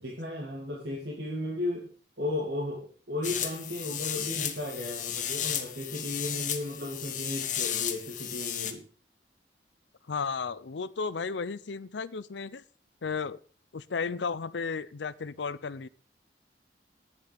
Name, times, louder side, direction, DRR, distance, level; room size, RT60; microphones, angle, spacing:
voice 1, 0.0-1.9 2.2-8.8, left 2 dB, 65° right, -1 dB, 2.4 m, -35 dB
sound 1, 3.2-8.7, left 10 dB, 45° left, 1.2 m, -34 dB
voice 2, 10.1-12.6 13.0-13.4 13.7-15.9, left 5 dB, 85° left, 17 dB, 0.6 m, -34 dB
9.8 x 7.5 x 6.6 m, 0.41 s
head